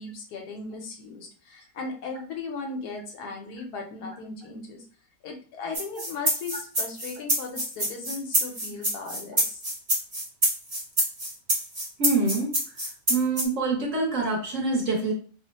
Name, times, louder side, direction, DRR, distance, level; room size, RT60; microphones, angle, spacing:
voice 1, 0.0-4.8 5.2-9.6, left 4 dB, 75° left, 3 dB, 1.2 m, -37 dB
sound 1, 5.7-13.4, right 1 dB, 30° right, 0.7 m, -26 dB
voice 2, 12.0-12.5 13.1-15.1, right 3 dB, 55° right, 0 dB, 1.2 m, -25 dB
3.0 x 2.1 x 4.0 m, 0.41 s
omnidirectional pair, 1.7 m